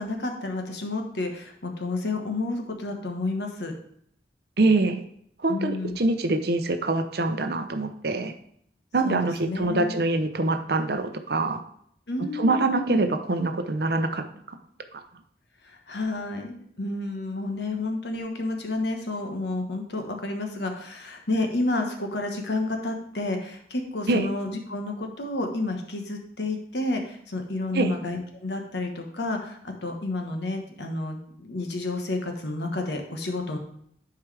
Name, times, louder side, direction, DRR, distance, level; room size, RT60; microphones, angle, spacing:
voice 1, 0.0-3.7 5.5-6.0 9.0-10.0 12.1-13.0 15.6-33.6, left 2 dB, 70° left, 3 dB, 1.2 m, -30 dB
voice 2, 4.6-5.0 5.4-8.3 8.9-11.6 12.4-14.6 14.9-15.0 24.1-24.3 27.7-27.9, right 2 dB, 60° right, 7 dB, 0.7 m, -24 dB
10.5 x 4.7 x 3.4 m, 0.67 s
head